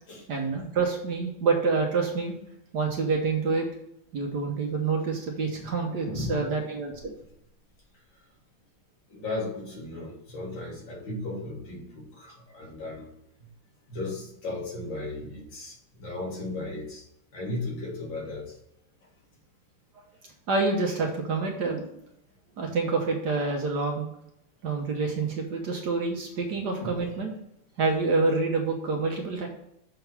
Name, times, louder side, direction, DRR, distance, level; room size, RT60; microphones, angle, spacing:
voice 1, 0.3-2.3 2.7-3.7 4.1-7.1 20.5-22.0 22.6-24.1 24.6-27.3 27.8-29.5, right 4 dB, 60° right, 1 dB, 1.4 m, -27 dB
voice 2, 5.6-6.4 9.1-13.1 13.9-17.0 17.3-18.6 26.8-27.0, left 2 dB, 60° left, -2 dB, 2.5 m, -36 dB
6.7 x 3.8 x 5.9 m, 0.76 s
omnidirectional pair, 2.3 m